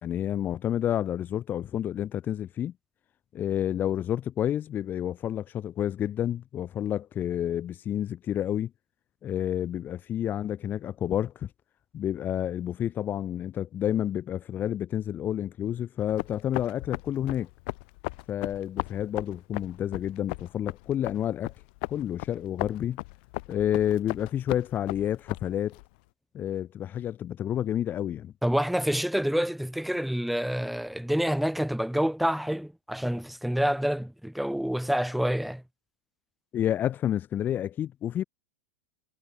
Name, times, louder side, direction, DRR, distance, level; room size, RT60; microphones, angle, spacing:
voice 1, 0.0-2.7 3.3-8.7 9.2-11.5 11.9-17.5 18.3-21.5 21.9-23.0 23.5-25.8 26.3-28.3 36.5-38.2, left 10 dB, 30° left, 1.0 m, -29 dB
footsteps jog flat sneaker, 16.0-25.9, left 27 dB, 60° left, 0.6 m, -37 dB
voice 2, 28.4-35.6, equal, ahead, 1.7 m, -27 dB
hypercardioid pair, 110°, 6 cm